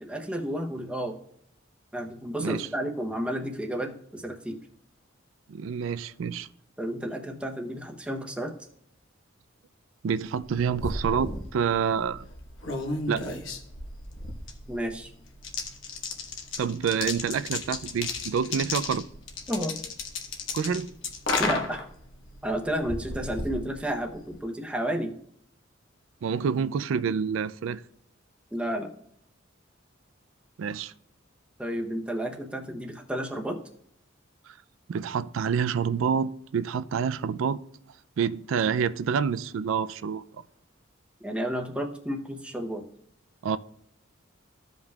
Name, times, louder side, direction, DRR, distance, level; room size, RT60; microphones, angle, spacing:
voice 1, 0.0-1.2 1.9-4.6 6.8-8.5 14.7-15.1 19.5-19.8 21.4-21.9 22.4-25.1 28.5-28.9 31.6-33.6 41.2-42.9, equal, 5° right, 0.7 m, -31 dB
voice 2, 5.5-6.5 10.0-12.2 13.1-13.3 16.6-19.1 20.5-20.9 26.2-27.8 30.6-30.9 34.9-37.6 38.2-40.2 43.4-43.6, right 6 dB, 90° right, 0.4 m, -27 dB
sound 1, 10.3-24.4, left 3 dB, 80° left, 1.2 m, -35 dB
14.5 x 5.3 x 2.3 m
head